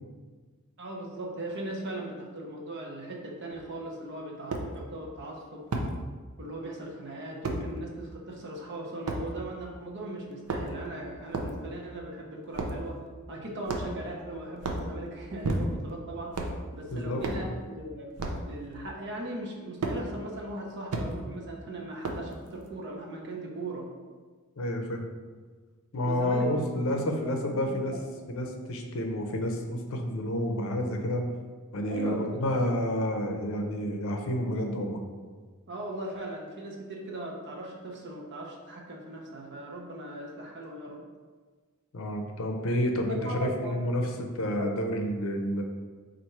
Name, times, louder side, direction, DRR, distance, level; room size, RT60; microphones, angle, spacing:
voice 1, 0.8-5.6 6.4-13.0 13.3-16.4 16.7-18.1 18.5-23.9 26.0-27.8 28.4-28.5 31.9-32.3 35.7-41.0 43.1-43.8 44.5-44.7, right 1 dB, 55° right, -1 dB, 0.8 m, -38 dB
sound 1, 3.5-3.6 4.5-4.7 5.7-5.9 7.4-7.6 9.1-9.2 10.3-10.9 11.3-11.6 12.5-12.8 13.7-14.1 14.6-14.9 15.4-15.9 16.3-16.6 17.2-17.5 18.2-18.4 19.8-20.0 20.9-21.1 22.0-22.3, right 2 dB, 85° right, 0.5 m, -31 dB
voice 2, 16.9-17.5 24.6-25.0 25.9-27.9 28.3-31.2 31.7-35.0 41.9-45.6, equal, 65° left, 3 dB, 0.6 m, -30 dB
4.2 x 2.5 x 4.4 m, 1.4 s
head